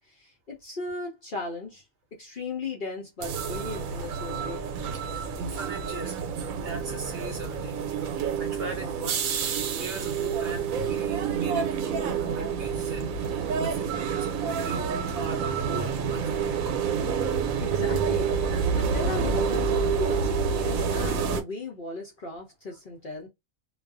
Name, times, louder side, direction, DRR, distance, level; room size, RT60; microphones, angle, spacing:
voice 1, 0.1-1.8 2.2-4.7 17.6-23.3, left 3 dB, 50° left, 0.7 m, -36 dB
sound 1, 3.2-21.4, right 6 dB, 80° right, 1.0 m, -28 dB
voice 2, 4.9-6.2 6.5-9.3 9.7-14.3 14.6-16.7, right 3 dB, 55° right, 0.8 m, -38 dB
2.4 x 2.3 x 2.4 m
omnidirectional pair, 1.4 m